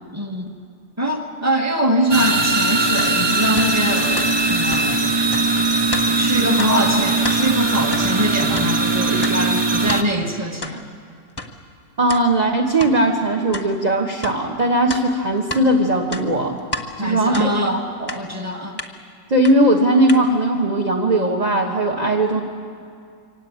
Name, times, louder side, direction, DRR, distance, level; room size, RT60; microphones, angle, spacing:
voice 1, 0.1-0.5 1.0-5.1 6.1-10.8 17.0-17.8 18.1-18.8, equal, 10° right, 3 dB, 1.6 m, -23 dB
sound 1, 2.1-10.0, right 3 dB, 40° right, 0.3 m, -20 dB
sound 2, 3.0-3.1 3.6-3.7 4.2-4.3 4.7-4.8 5.3-5.5 5.9-6.1 6.6-6.7 7.1-7.4 7.9-8.1 8.5-8.7 9.2-9.4 9.9-10.0 10.6-10.8 11.4-11.5 12.1-12.2 12.8-12.9 13.5-13.7 14.2-14.4 14.9-15.7 16.0-16.9 17.3-17.5 18.1-18.2 18.8-18.9 19.4-19.5 20.1-20.2, left 2 dB, 15° left, 1.0 m, -30 dB
voice 2, 6.6-7.0 12.0-16.6 17.0-18.1 19.3-22.4, right 1 dB, 25° right, 0 dB, 1.2 m, -19 dB
24.5 x 18.0 x 8.7 m, 2.3 s
omnidirectional pair, 1.9 m